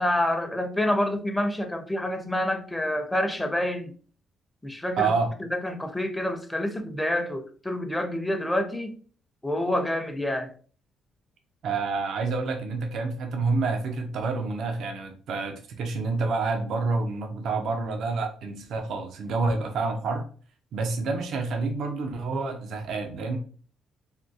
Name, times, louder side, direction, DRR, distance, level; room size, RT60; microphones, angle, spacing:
voice 1, 0.0-3.9 4.6-5.1 5.5-8.9 9.4-10.5, left 1 dB, 10° left, 7 dB, 0.5 m, -27 dB
voice 2, 5.0-5.3 11.6-20.2 20.7-23.4, right 4 dB, 75° right, 4 dB, 0.5 m, -28 dB
3.4 x 2.2 x 2.6 m, 0.42 s
cardioid pair, 90°, 0 cm